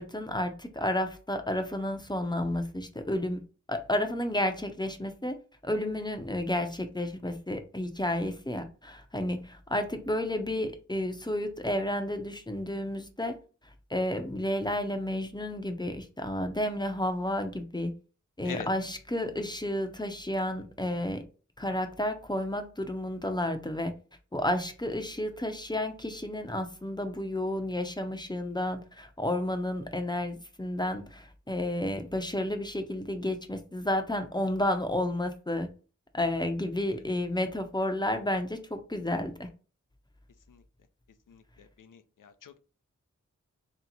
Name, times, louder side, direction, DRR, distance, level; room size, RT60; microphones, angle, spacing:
voice 1, 0.0-3.4 3.7-5.4 5.6-13.4 13.9-17.9 18.4-21.2 21.6-23.9 24.3-35.7 36.1-39.5, left 1 dB, 15° left, 0.7 m, -31 dB
voice 2, 41.8-42.6, left 7 dB, 80° left, 0.5 m, -43 dB
3.3 x 2.9 x 4.0 m
wide cardioid pair, 50°, 31 cm